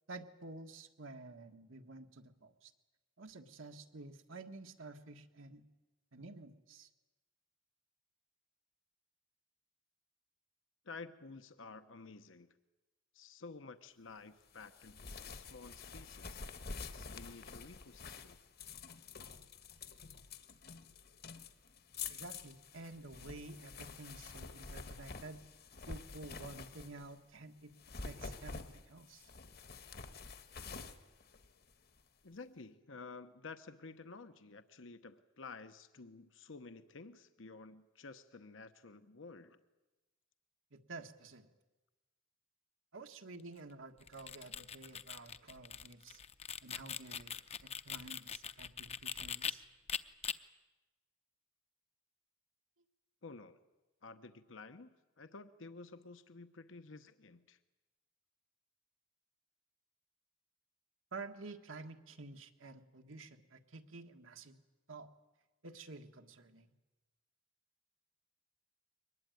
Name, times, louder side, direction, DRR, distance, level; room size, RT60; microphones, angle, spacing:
voice 1, 0.1-2.7 3.2-5.6 6.1-6.9 22.1-25.4 25.9-27.7 28.0-29.3 40.7-41.5 42.9-46.2 46.6-49.6 61.1-64.6 64.9-65.1 65.6-66.7, right 3 dB, 85° right, 5 dB, 1.7 m, -51 dB
voice 2, 10.8-12.5 13.1-16.5 16.8-18.4 32.2-39.6 53.2-53.6 54.0-57.6, left 4 dB, 70° left, 10 dB, 1.0 m, -52 dB
sound 1, 14.5-27.2 27.7-32.0, left 4 dB, 55° left, 1.4 m, -48 dB
sound 2, 44.0-49.5 49.9-50.3, left 8 dB, 35° left, 0.7 m, -42 dB
23.0 x 20.0 x 9.2 m, 1.1 s
head